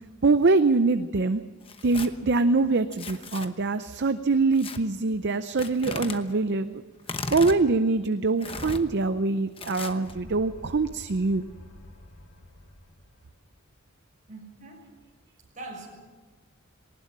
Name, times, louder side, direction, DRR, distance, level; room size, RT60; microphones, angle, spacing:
voice 1, 0.2-1.4 1.8-6.8 7.3-11.4, right 3 dB, 50° right, 11 dB, 0.6 m, -24 dB
Tearing, 1.6-2.1 2.9-3.5 4.5-4.8 5.6-6.2 7.0-7.6 8.4-8.8 9.6-10.1, left 3 dB, 25° left, 1.0 m, -36 dB
sound 1, 10.0-13.6, left 1 dB, 80° left, 1.9 m, -48 dB
voice 2, 14.3-14.9 15.5-15.9, right 2 dB, 35° right, 0 dB, 6.3 m, -42 dB
20.0 x 19.0 x 7.4 m, 1.4 s
head